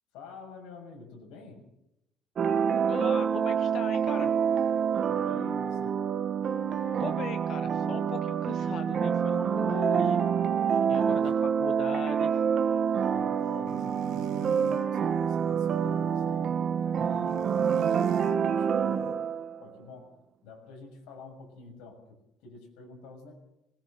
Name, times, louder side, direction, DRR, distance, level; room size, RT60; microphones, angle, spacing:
voice 1, 0.1-1.7 5.0-6.1 8.4-8.5 10.9-11.4 13.0-19.2 19.6-20.1 20.4-23.3, left 4 dB, 85° left, 2 dB, 6.7 m, -48 dB
sound 1, 2.4-19.6, right 7 dB, 45° right, 1.2 m, -27 dB
voice 2, 2.9-4.3 7.0-10.2 10.9-12.3, left 9 dB, 50° left, 11 dB, 0.8 m, -39 dB
sound 2, 13.7-14.9 17.3-18.3, right 11 dB, 75° right, 1.8 m, -39 dB
20.0 x 19.5 x 6.8 m, 0.86 s
cardioid pair, 120°, 0 cm